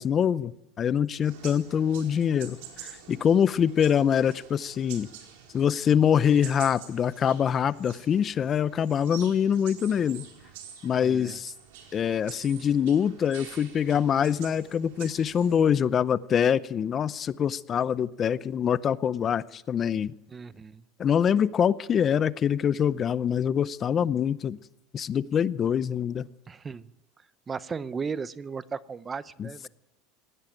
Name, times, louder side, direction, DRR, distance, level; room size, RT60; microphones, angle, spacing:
voice 1, 0.0-5.1 5.5-10.2 10.8-11.5 11.9-20.1 21.0-24.6 24.9-26.3 29.4-29.7, left 8 dB, 35° left, 0.6 m, -24 dB
sound 1, 1.2-15.7, right 9 dB, 75° right, 4.5 m, -47 dB
voice 2, 10.9-11.4 20.3-20.8 26.5-26.9 27.5-29.7, right 5 dB, 20° right, 0.7 m, -36 dB
19.0 x 16.0 x 9.1 m
supercardioid pair, 115°, 0 cm